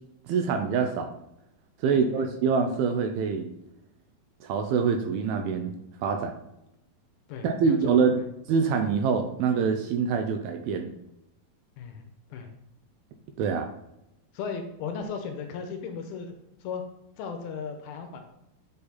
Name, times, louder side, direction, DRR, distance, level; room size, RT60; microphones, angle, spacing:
voice 1, 0.3-1.1 1.8-3.5 4.4-5.7 6.0-6.4 7.4-8.2 8.5-10.9 13.4-13.7, right 6 dB, 85° right, 5 dB, 2.3 m, -25 dB
voice 2, 1.9-2.3 7.3-8.0 11.8-12.0 12.3-12.5 14.3-16.4 16.6-16.8 17.2-18.2, left 6 dB, 80° left, 5 dB, 2.4 m, -36 dB
7.7 x 4.1 x 4.1 m, 0.85 s
omnidirectional pair, 4.7 m